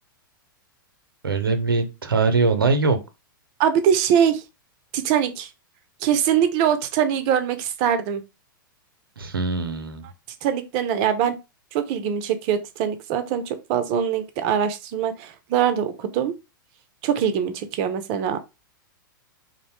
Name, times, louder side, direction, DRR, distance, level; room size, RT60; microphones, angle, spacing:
voice 1, 1.2-3.0 9.2-10.0, right 4 dB, 90° right, 0.6 m, -22 dB
voice 2, 3.6-4.4 4.9-5.5 6.0-8.2 10.4-11.3 11.7-16.3 17.0-18.4, right 9 dB, 45° right, 0.5 m, -22 dB
2.5 x 2.0 x 2.9 m
hypercardioid pair, 110°, 12 cm